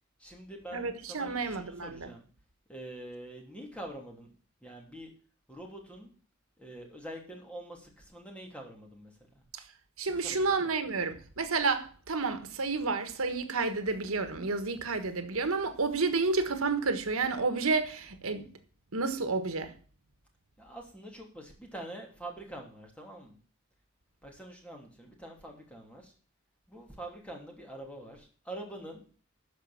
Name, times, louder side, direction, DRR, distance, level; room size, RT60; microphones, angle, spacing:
voice 1, 0.2-2.3 2.7-4.3 4.6-5.1 5.5-6.1 6.6-9.1 10.1-10.8 20.6-23.4 24.2-26.1 26.7-29.0, right 1 dB, 5° left, 3.0 m, -45 dB
voice 2, 0.7-2.1 9.5-9.6 10.0-18.5 18.9-19.7, right 4 dB, 80° right, 1.4 m, -30 dB
13.0 x 5.2 x 7.1 m
head